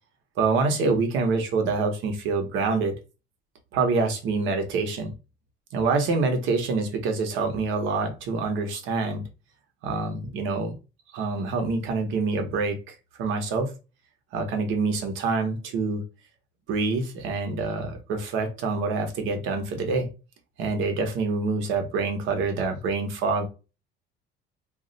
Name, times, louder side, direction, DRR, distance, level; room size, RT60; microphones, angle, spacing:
voice 1, 0.4-3.0 3.7-5.1 5.7-9.2 9.8-10.8 11.1-13.7 14.3-16.0 16.7-20.1 20.6-23.4, right 4 dB, 70° right, 0.8 m, -26 dB
2.3 x 2.1 x 3.8 m
cardioid pair, 155°, 21 cm